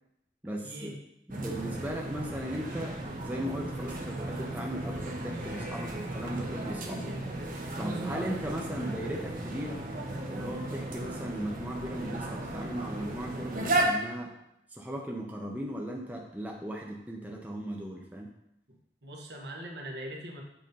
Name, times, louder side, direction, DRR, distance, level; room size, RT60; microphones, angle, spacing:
voice 1, 0.4-1.0 1.3-7.1 7.8-9.8 10.2-14.3 14.7-18.3, right 1 dB, 10° right, -1 dB, 0.5 m, -37 dB
sound 1, 1.3-13.9, right 2 dB, 50° right, 0.8 m, -35 dB
voice 2, 19.0-20.4, right 1 dB, 70° right, 0 dB, 1.1 m, -41 dB
7.6 x 2.7 x 5.2 m, 0.81 s
head